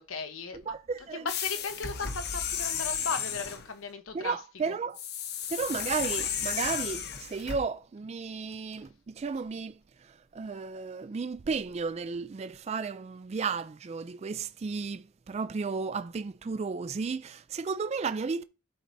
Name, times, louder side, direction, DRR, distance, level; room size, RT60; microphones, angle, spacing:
voice 1, 0.0-0.8 1.1-4.4 4.7-4.8, left 5 dB, 85° left, 1.0 m, -36 dB
voice 2, 0.7-1.3 4.1-5.0 5.5-9.8 10.3-18.4, right 5 dB, 30° right, 0.3 m, -33 dB
sound 1, 1.3-3.7 4.9-7.6, left 8 dB, 55° left, 0.9 m, -33 dB
12.0 x 4.6 x 2.7 m
head